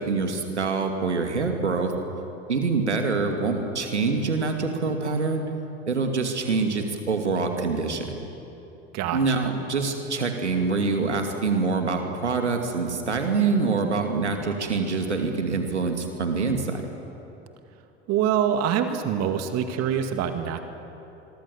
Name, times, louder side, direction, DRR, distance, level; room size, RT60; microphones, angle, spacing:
voice 1, 0.0-1.9 2.5-5.4 5.9-8.2 9.1-16.8, right 4 dB, 85° right, 4 dB, 2.5 m, -25 dB
voice 2, 18.1-20.6, right 9 dB, 50° right, 7 dB, 2.2 m, -25 dB
25.5 x 23.5 x 7.2 m, 3.0 s
figure-of-eight pair, 70°, 34 cm